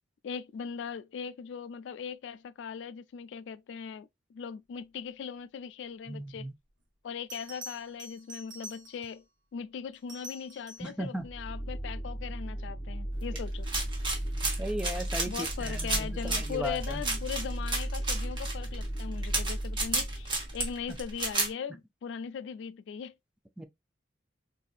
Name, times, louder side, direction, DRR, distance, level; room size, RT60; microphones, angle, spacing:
voice 1, 0.2-6.5 7.0-9.2 9.5-13.7 15.3-23.2, left 7 dB, 70° left, 0.3 m, -39 dB
voice 2, 6.1-6.5 10.8-11.3 14.6-17.0 23.6-23.7, equal, 5° right, 0.4 m, -37 dB
Bell, 6.7-6.8 7.3-9.2 9.9-11.0 13.7-13.9, equal, 70° right, 0.9 m, -47 dB
sound 1, 11.2-20.8, right 1 dB, 20° left, 0.9 m, -36 dB
sound 2, 13.4-21.5, right 2 dB, 25° right, 1.1 m, -33 dB
4.0 x 2.6 x 2.3 m
head